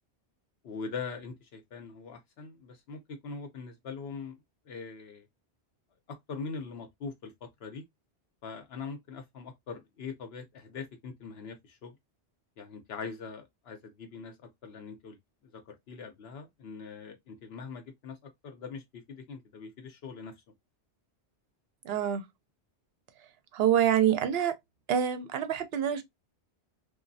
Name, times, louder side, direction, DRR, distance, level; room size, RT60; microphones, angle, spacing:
voice 1, 0.6-4.3 4.7-5.3 6.1-7.8 8.4-11.9 12.6-14.3 14.6-15.2 15.4-20.3, left 5 dB, 70° left, 0.9 m, -42 dB
voice 2, 21.8-22.3 23.5-24.6 24.9-26.0, right 9 dB, 65° right, 0.8 m, -26 dB
3.0 x 2.3 x 2.6 m
omnidirectional pair, 1.1 m